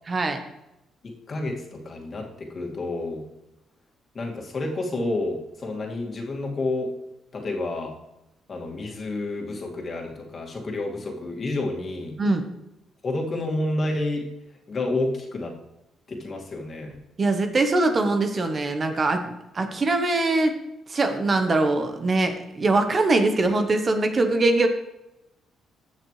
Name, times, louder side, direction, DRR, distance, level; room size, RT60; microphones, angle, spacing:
voice 1, 0.1-0.4 12.2-12.4 17.2-19.2 19.5-20.6 20.9-24.7, right 2 dB, 35° right, 6 dB, 1.1 m, -22 dB
voice 2, 1.0-3.2 4.1-6.9 7.3-7.9 8.5-12.2 13.0-14.2 14.7-15.5 16.1-17.0, left 2 dB, 40° left, 0 dB, 2.3 m, -29 dB
15.0 x 6.4 x 3.3 m, 0.91 s
cardioid pair, 90°, 0 cm